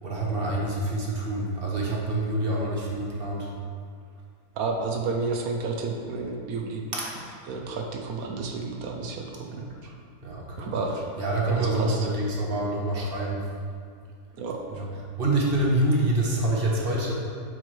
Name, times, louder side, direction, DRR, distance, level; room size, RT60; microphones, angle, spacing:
voice 1, 0.0-3.5 6.9-7.1 10.2-10.7 11.2-13.5 14.7-14.8 15.2-17.1, right 1 dB, 40° right, -3 dB, 1.1 m, -26 dB
voice 2, 4.6-6.8 7.4-9.9 10.6-11.1 11.5-12.1 14.4-14.8, right 4 dB, 70° right, 2 dB, 1.1 m, -31 dB
7.8 x 4.7 x 3.2 m, 2.2 s
omnidirectional pair, 1.7 m